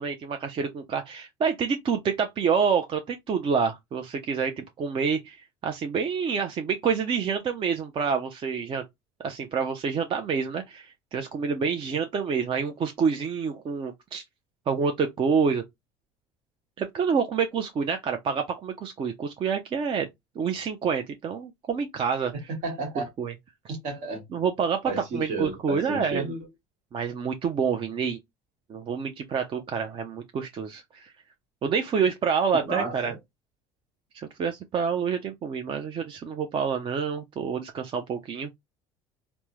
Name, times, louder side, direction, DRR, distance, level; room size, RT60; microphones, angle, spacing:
voice 1, 0.0-5.4 5.6-8.8 9.2-14.2 14.7-15.6 16.8-20.1 20.4-22.3 23.2-23.3 23.6-23.8 24.3-26.3 26.9-28.2 28.7-31.1 31.6-33.1 34.1-38.5, right 6 dB, 35° right, 0.5 m, -27 dB
voice 2, 22.5-23.1 23.7-24.2 24.9-26.5 32.5-33.2, right 3 dB, 65° right, 1.3 m, -32 dB
3.3 x 2.0 x 3.0 m
hypercardioid pair, 85°, 14 cm